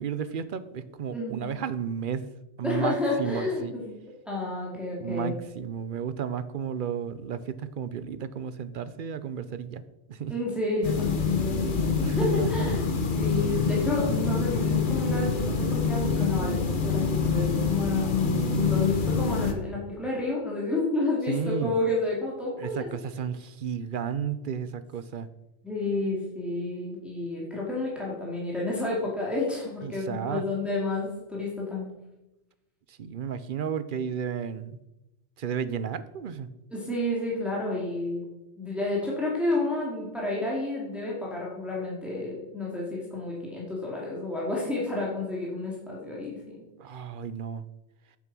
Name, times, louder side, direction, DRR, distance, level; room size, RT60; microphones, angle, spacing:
voice 1, 0.0-2.3 2.6-3.7 5.0-9.8 10.1-10.3 12.0-12.7 18.0-18.9 21.3-21.7 22.6-25.3 29.8-30.4 32.9-34.8 35.4-36.5 46.8-47.6, right 7 dB, 55° right, 14 dB, 0.7 m, -33 dB
voice 2, 1.1-1.5 2.6-3.9 4.3-5.4 10.3-12.8 13.2-22.9 25.6-31.9 36.7-38.2 38.6-46.6, left 2 dB, ahead, -4 dB, 2.7 m, -30 dB
sound 1, 10.8-19.5, left 5 dB, 50° left, 1.1 m, -26 dB
8.9 x 7.3 x 6.1 m, 0.97 s
omnidirectional pair, 1.2 m